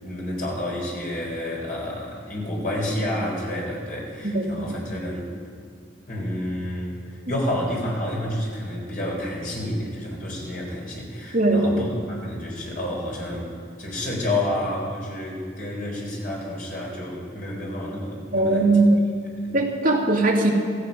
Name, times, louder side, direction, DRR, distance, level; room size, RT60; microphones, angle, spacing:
voice 1, 0.0-5.3 6.1-13.5 13.8-18.7 19.4-19.6, left 1 dB, 45° left, -2 dB, 4.2 m, -29 dB
voice 2, 4.2-4.7 11.3-11.8 18.3-19.0 19.5-20.5, right 2 dB, 45° right, -2 dB, 2.5 m, -20 dB
17.0 x 15.0 x 5.4 m, 2.1 s
head